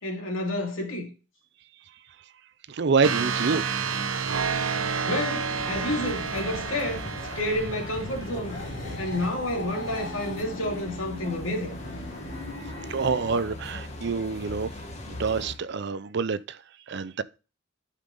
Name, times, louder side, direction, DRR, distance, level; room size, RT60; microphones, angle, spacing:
voice 1, 0.0-1.1 5.1-7.0 7.4-8.6 9.0-11.7, left 1 dB, 85° left, 2.6 m, -30 dB
voice 2, 2.7-3.6 12.9-14.7 15.1-16.6 16.9-17.2, right 5 dB, 60° right, 0.5 m, -26 dB
sound 1, 3.0-8.5, right 5 dB, 85° right, 0.9 m, -30 dB
sound 2, 5.5-15.6, left 1 dB, 35° left, 1.5 m, -40 dB
sound 3, 7.2-13.4, left 1 dB, 60° left, 3.4 m, -39 dB
12.0 x 5.2 x 3.9 m
head